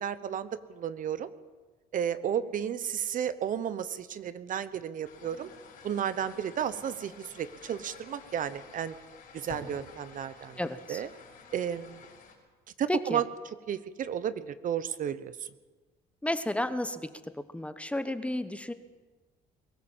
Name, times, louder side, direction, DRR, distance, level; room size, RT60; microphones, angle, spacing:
voice 1, 0.0-1.3 1.9-5.5 5.8-8.9 9.3-10.6 10.9-11.1 11.5-12.0 12.8-13.2 13.7-15.5, right 9 dB, 50° right, 14 dB, 1.0 m, -33 dB
sound 1, 5.0-12.3, left 4 dB, 55° left, 5.4 m, -50 dB
voice 2, 10.6-11.0 12.9-13.2 16.2-17.1 17.4-18.7, left 1 dB, 5° left, 11 dB, 1.1 m, -32 dB
23.0 x 15.5 x 7.4 m, 1.3 s
cardioid pair, 110°, 17 cm